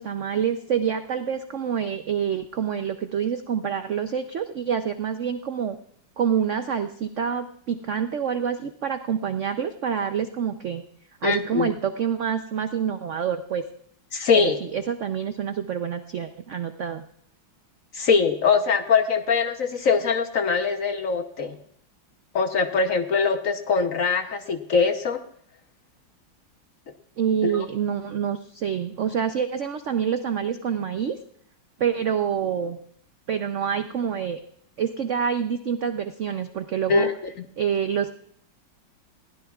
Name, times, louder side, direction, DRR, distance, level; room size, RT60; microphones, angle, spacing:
voice 1, 0.0-5.8 6.2-10.8 11.2-13.7 14.3-17.0 27.2-31.2 31.8-32.8 33.3-34.4 34.8-37.1 37.6-38.2, right 8 dB, 85° right, 8 dB, 0.6 m, -27 dB
voice 2, 11.2-11.7 14.1-14.6 17.9-21.6 22.3-25.2 27.4-27.7 36.9-37.1, left 5 dB, 55° left, 7 dB, 1.0 m, -22 dB
21.0 x 16.0 x 2.4 m, 0.65 s
omnidirectional pair, 2.1 m